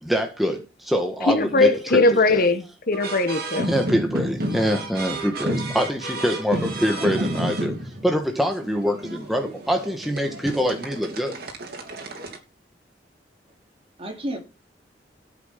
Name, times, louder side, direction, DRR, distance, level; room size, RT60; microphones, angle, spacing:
voice 1, 0.0-2.5 3.6-7.7 8.0-11.4, equal, ahead, 1.6 m, -24 dB
voice 2, 1.3-3.7, left 2 dB, 55° left, 1.5 m, -20 dB
sound 1, 2.9-12.4, right 1 dB, 60° right, 3.2 m, -31 dB
voice 3, 7.0-7.5 9.4-9.5 14.0-14.4, right 1 dB, 35° right, 3.3 m, -33 dB
14.0 x 8.5 x 5.9 m
head